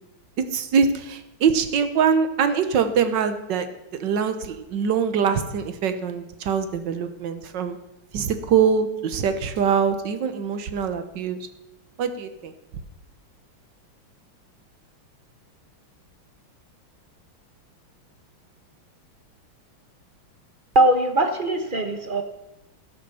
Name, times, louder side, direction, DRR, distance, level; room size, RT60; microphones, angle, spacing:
voice 1, 0.5-3.7 4.0-7.8 8.1-11.4 12.0-12.5, right 6 dB, 60° right, 9 dB, 1.6 m, -23 dB
voice 2, 20.7-22.2, right 1 dB, 35° right, 6 dB, 0.8 m, -20 dB
17.0 x 6.6 x 7.0 m, 0.92 s
omnidirectional pair, 2.3 m